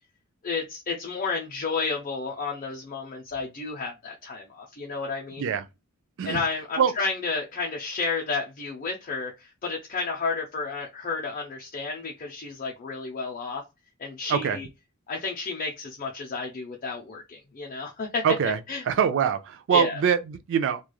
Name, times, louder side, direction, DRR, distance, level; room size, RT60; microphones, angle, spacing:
voice 1, 0.4-5.4 6.2-13.6 14.0-14.7 15.1-18.2 18.7-18.8 19.7-20.0, left 4 dB, 40° left, 0.5 m, -31 dB
voice 2, 18.2-18.6 18.8-20.8, right 7 dB, 60° right, 0.4 m, -24 dB
3.0 x 2.3 x 2.2 m
head